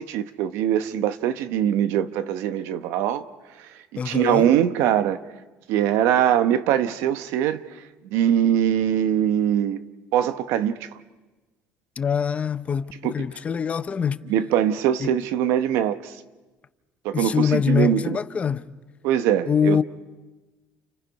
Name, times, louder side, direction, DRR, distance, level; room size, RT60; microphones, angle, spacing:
voice 1, 0.0-3.2 3.6-3.7 4.0-5.2 5.7-7.6 8.0-9.8 10.1-10.9 13.0-13.1 14.3-16.2 17.0-18.2 19.0-19.8, right 10 dB, 85° right, 1.0 m, -22 dB
voice 2, 4.0-4.5 12.0-14.2 15.0-15.1 17.1-18.7 19.5-19.8, left 7 dB, 30° left, 0.8 m, -24 dB
29.5 x 29.0 x 5.3 m
cardioid pair, 130°, 4 cm